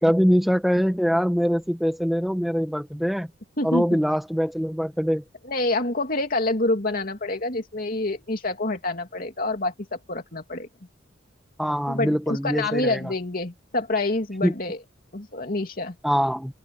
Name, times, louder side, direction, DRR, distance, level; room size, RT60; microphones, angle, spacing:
voice 1, 0.0-3.3 3.6-5.2 11.6-13.0 14.4-14.5 16.0-16.5, equal, ahead, 1.2 m, -23 dB
voice 2, 3.6-4.0 5.4-10.7 11.9-14.8 15.1-15.9, left 2 dB, 45° left, 2.9 m, -27 dB
head